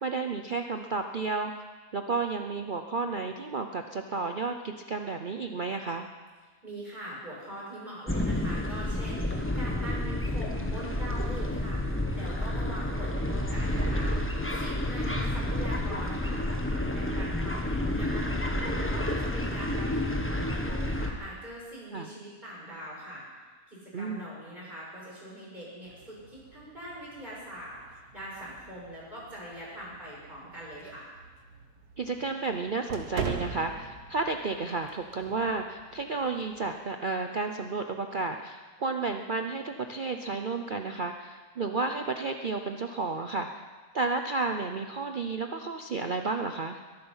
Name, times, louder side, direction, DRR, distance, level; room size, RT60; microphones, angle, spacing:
voice 1, 0.0-1.7 1.9-6.1 21.9-22.1 23.9-24.3 32.0-43.6 43.9-46.8, right 3 dB, 45° right, 5 dB, 0.7 m, -32 dB
voice 2, 6.6-14.2 14.6-23.2 23.7-31.1, right 1 dB, 30° right, -5 dB, 6.4 m, -42 dB
sound 1, 8.1-21.1, left 1 dB, 10° left, 1.3 m, -30 dB
sound 2, 25.8-36.7, right 5 dB, 80° right, 1.7 m, -43 dB
22.5 x 11.5 x 5.6 m, 1.4 s
omnidirectional pair, 1.7 m